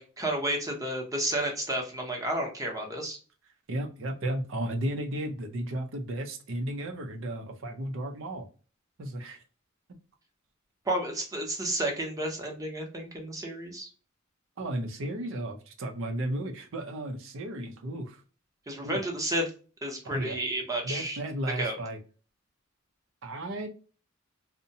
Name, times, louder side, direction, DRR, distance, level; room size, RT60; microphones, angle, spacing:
voice 1, 0.0-3.2 10.9-13.9 18.7-19.4 19.8-21.2 21.6-21.8, right 1 dB, 15° right, 2 dB, 0.7 m, -31 dB
voice 2, 3.7-8.5 9.0-9.4 14.6-18.2 18.8-19.0 20.0-20.4 20.8-22.0 23.2-23.7, right 1 dB, 65° right, 5 dB, 0.5 m, -34 dB
2.6 x 2.1 x 2.6 m, 0.37 s
head